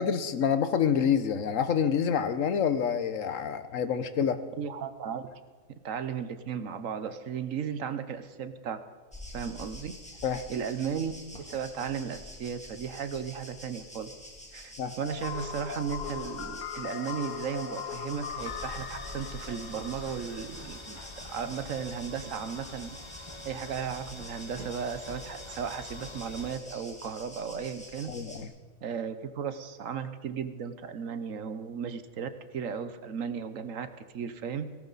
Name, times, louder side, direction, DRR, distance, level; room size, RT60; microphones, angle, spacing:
voice 1, 0.0-4.4 10.2-10.4 14.8-14.9 28.1-28.5, left 7 dB, 70° left, 11 dB, 1.3 m, -27 dB
voice 2, 4.6-5.2 5.8-8.8 9.3-9.9 10.5-11.1 11.4-14.1 14.5-21.0 21.3-22.9 23.4-28.1 28.8-34.7, right 7 dB, 75° right, 11 dB, 1.3 m, -35 dB
sound 1, 9.1-28.4, left 1 dB, 5° left, 2.6 m, -47 dB
sound 2, 15.0-20.8, left 8 dB, 50° left, 0.5 m, -39 dB
sound 3, 18.4-26.6, left 2 dB, 25° left, 1.0 m, -46 dB
17.5 x 17.5 x 4.1 m, 1.4 s
omnidirectional pair, 1.4 m